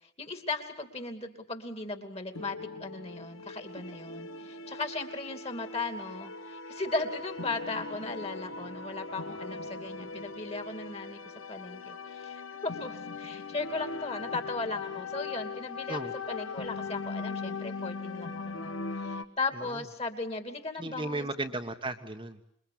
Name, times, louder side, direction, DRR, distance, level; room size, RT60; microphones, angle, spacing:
voice 1, 0.2-11.2 11.5-16.0 16.3-21.3, left 3 dB, 30° left, 7 dB, 2.7 m, -37 dB
sound 1, 2.3-19.2, left 4 dB, 85° left, 1.3 m, -40 dB
voice 2, 20.8-22.4, right 2 dB, 25° right, 5 dB, 1.2 m, -35 dB
27.0 x 22.5 x 8.7 m, 0.66 s
head